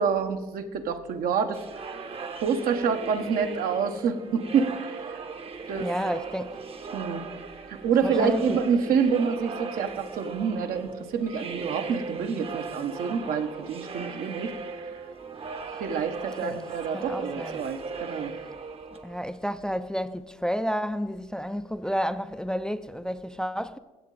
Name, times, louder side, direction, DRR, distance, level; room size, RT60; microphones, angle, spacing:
voice 1, 0.0-1.6 2.4-5.2 5.7-5.9 6.9-7.2 7.7-14.5 15.8-18.3, right 6 dB, 70° right, 1.0 m, -27 dB
sound 1, 1.5-19.4, right 4 dB, 40° right, 0.9 m, -38 dB
voice 2, 5.8-6.6 8.0-8.6 16.4-16.7 16.9-17.7 19.0-23.8, equal, 5° left, 0.4 m, -31 dB
16.5 x 7.4 x 3.9 m
supercardioid pair, 75°, 16 cm